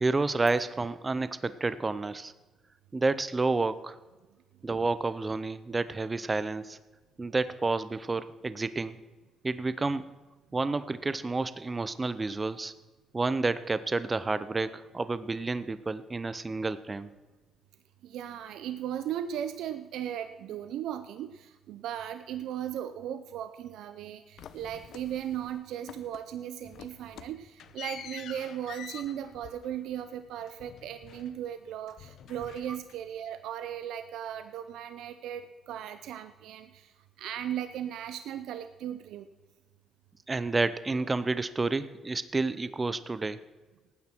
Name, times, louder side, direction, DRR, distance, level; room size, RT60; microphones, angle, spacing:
voice 1, 0.0-2.3 2.9-4.0 4.6-6.8 7.2-9.0 9.4-10.1 10.5-12.7 13.1-17.1 40.3-43.4, right 3 dB, 20° right, 14 dB, 0.6 m, -30 dB
voice 2, 18.0-39.3, right 10 dB, 85° right, 10 dB, 0.6 m, -37 dB
sound 1, 24.4-25.6 25.9-26.4 26.6-31.6 31.9-33.2, left 9 dB, 70° left, 0.8 m, -48 dB
18.0 x 9.6 x 4.5 m, 1.2 s
cardioid pair, 130°, 0 cm